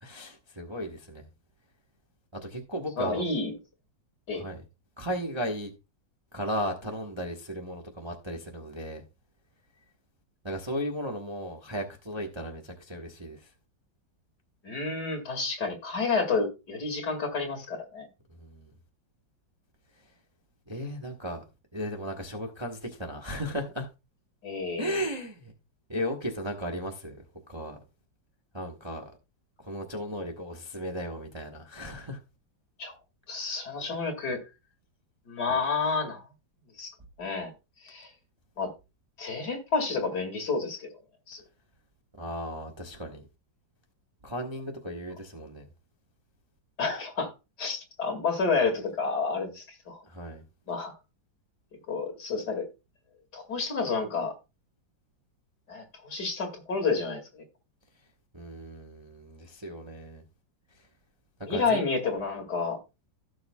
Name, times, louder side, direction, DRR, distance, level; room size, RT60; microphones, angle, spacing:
voice 1, 0.0-1.3 2.3-3.3 4.3-4.6 5.0-5.7 6.3-9.0 10.4-13.5 18.4-18.7 20.7-21.4 21.7-23.9 24.8-25.5 25.9-27.8 28.5-29.2 29.6-32.2 42.2-43.2 44.2-45.7 50.1-50.4 58.3-60.2 61.4-61.8, equal, 20° right, 1.0 m, -35 dB
voice 2, 3.0-3.5 4.3-4.4 14.6-18.1 24.4-25.0 32.8-32.9 33.3-34.4 35.3-36.2 36.8-36.9 37.2-37.5 37.8-38.1 38.6-38.7 39.2-40.9 41.3-41.4 46.8-47.3 47.6-50.0 50.7-51.0 51.9-52.7 53.3-54.3 55.7-57.2 61.5-62.8, left 4 dB, 60° left, 2.8 m, -30 dB
16.5 x 6.4 x 2.3 m
omnidirectional pair, 2.0 m